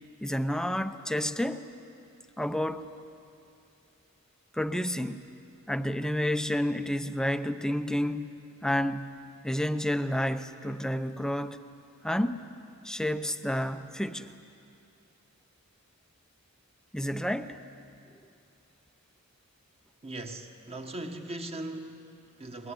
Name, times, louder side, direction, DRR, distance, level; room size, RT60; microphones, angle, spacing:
voice 1, 0.2-1.6 2.4-2.9 4.5-5.3 5.7-11.6 12.0-12.4 12.8-14.3 16.9-17.6, equal, 5° left, 10 dB, 0.7 m, -30 dB
voice 2, 20.0-22.7, right 2 dB, 30° right, 4 dB, 1.5 m, -39 dB
21.5 x 20.5 x 9.9 m, 2.6 s
head